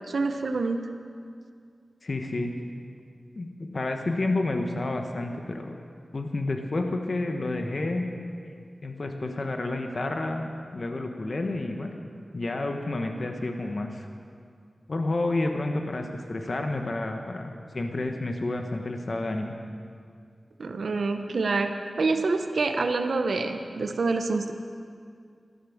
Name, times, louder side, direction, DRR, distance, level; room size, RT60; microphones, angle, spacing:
voice 1, 0.1-0.8 20.6-24.5, right 3 dB, 75° right, 6 dB, 1.0 m, -27 dB
voice 2, 2.0-2.5 3.4-5.7 6.1-8.0 8.8-11.9 12.3-14.1 14.9-19.5, left 2 dB, 55° left, 4 dB, 1.3 m, -30 dB
14.5 x 12.5 x 7.3 m, 2.3 s
wide cardioid pair, 65°, 0 cm